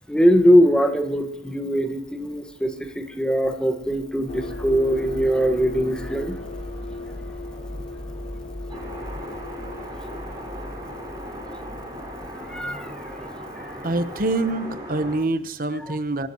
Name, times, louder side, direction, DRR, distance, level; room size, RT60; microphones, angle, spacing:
voice 1, 0.1-6.4 7.7-7.8 12.4-12.9 13.5-13.7 15.8-16.0, equal, 5° left, 5 dB, 1.6 m, -21 dB
sound 1, 4.3-13.8, left 2 dB, 35° left, 4.4 m, -36 dB
sound 2, 8.7-15.2, equal, 20° right, 5.5 m, -37 dB
voice 2, 13.8-16.3, right 2 dB, 55° right, 11 dB, 1.0 m, -25 dB
24.5 x 13.0 x 3.1 m, 0.73 s
head